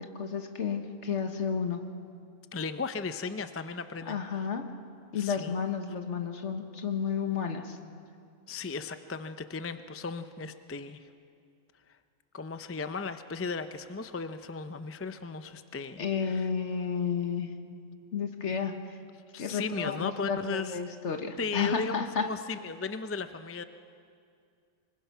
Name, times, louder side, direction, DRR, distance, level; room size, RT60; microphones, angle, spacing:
voice 1, 0.0-1.8 4.1-4.6 5.1-7.8 16.0-17.5 18.1-19.0 19.4-22.2, left 6 dB, 65° left, 6 dB, 1.6 m, -32 dB
voice 2, 2.5-4.5 5.1-5.6 8.5-11.1 12.3-16.5 19.3-20.8 21.4-23.6, left 4 dB, 20° left, 10 dB, 0.4 m, -36 dB
24.5 x 21.5 x 5.7 m, 2.3 s
omnidirectional pair, 1.3 m